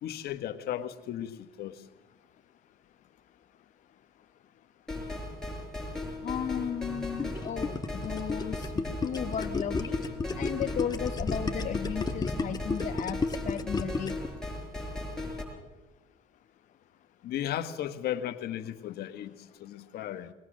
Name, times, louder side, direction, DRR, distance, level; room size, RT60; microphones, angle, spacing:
voice 1, 0.0-1.8 17.2-20.3, left 11 dB, 70° left, 8 dB, 1.4 m, -35 dB
sound 1, 4.9-15.4, left 1 dB, 5° left, 6.2 m, -37 dB
voice 2, 6.2-10.0 10.4-14.2, left 9 dB, 45° left, 8 dB, 0.7 m, -35 dB
Gurgling, 7.2-14.3, left 3 dB, 25° left, 1.4 m, -32 dB
21.0 x 19.5 x 6.4 m, 1.0 s
cardioid pair, 110°, 17 cm